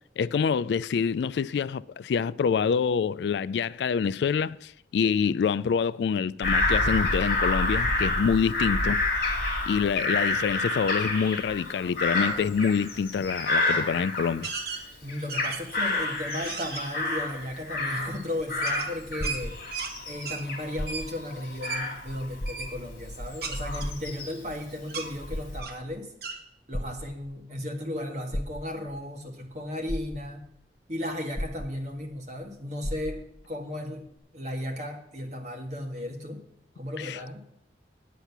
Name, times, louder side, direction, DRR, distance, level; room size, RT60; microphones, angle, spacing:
voice 1, 0.2-9.0 9.7-14.5 37.0-37.2, left 6 dB, 75° left, 0.3 m, -26 dB
Bird vocalization bird call bird song / Crow, 6.4-14.7 15.1-18.2 18.5-24.5 25.0-25.6, left 2 dB, 55° left, 2.6 m, -29 dB
sound 1, 14.4-14.8 15.3-15.8 16.3-16.8 18.6-19.9 20.2-20.4 20.9-21.1 21.6-21.8 22.4-22.7 23.4-24.5 24.9-25.1 25.6-25.8 26.2-26.4, right 5 dB, 60° right, 1.2 m, -35 dB
voice 2, 15.0-19.5 20.0-26.1 26.7-30.4 30.9-34.0 34.3-36.4 36.7-37.4, left 1 dB, 40° right, 1.7 m, -35 dB
sound 2, 19.2-20.1 20.7-21.3 21.8-21.9 22.3-23.1 23.8-24.6 25.1-26.0 26.7-27.5 28.3-29.0 29.5-29.6 29.9-30.6 31.3-32.2 32.4-32.5 32.8-33.5 34.2-34.3, equal, 35° left, 1.0 m, -35 dB
9.2 x 8.3 x 5.9 m
head